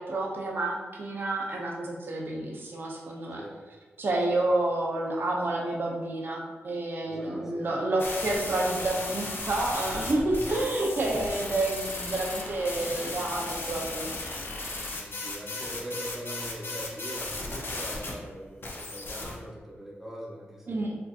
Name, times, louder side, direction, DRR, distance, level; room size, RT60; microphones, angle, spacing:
voice 1, 0.0-3.4 4.0-14.5 20.7-21.0, right 2 dB, 50° right, -2 dB, 0.6 m, -29 dB
voice 2, 3.3-3.6 4.1-4.2 4.4-4.5 7.0-8.1 15.0-20.8, equal, 10° right, -5 dB, 1.0 m, -41 dB
sound 1, 8.0-18.1 18.6-19.4, left 2 dB, 55° left, 0.7 m, -35 dB
4.3 x 2.7 x 2.4 m, 1.4 s
cardioid pair, 70°, 5 cm